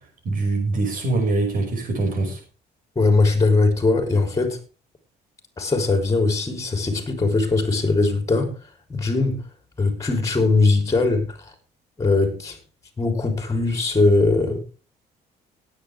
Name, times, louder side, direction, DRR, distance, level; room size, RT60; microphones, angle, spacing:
voice 1, 0.2-2.4, right 2 dB, 55° right, 5.7 m, -23 dB
voice 2, 3.0-4.6 5.6-8.5 8.9-9.4 9.8-11.5 12.0-12.6 13.0-14.6, left 3 dB, 20° left, 3.5 m, -20 dB
18.0 x 8.8 x 3.4 m
cardioid pair, 110°, 17 cm